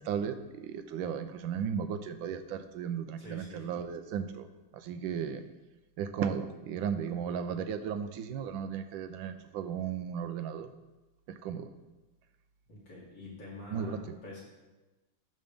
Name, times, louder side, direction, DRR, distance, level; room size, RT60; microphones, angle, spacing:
voice 1, 0.0-4.5 4.7-5.4 6.0-10.7 11.3-11.7 13.7-14.0, right 7 dB, 75° right, 9 dB, 1.3 m, -35 dB
voice 2, 3.2-3.7 11.5-11.6 12.7-14.4, left 2 dB, 60° left, -6 dB, 3.5 m, -47 dB
13.0 x 6.6 x 3.5 m, 1.1 s
omnidirectional pair, 2.3 m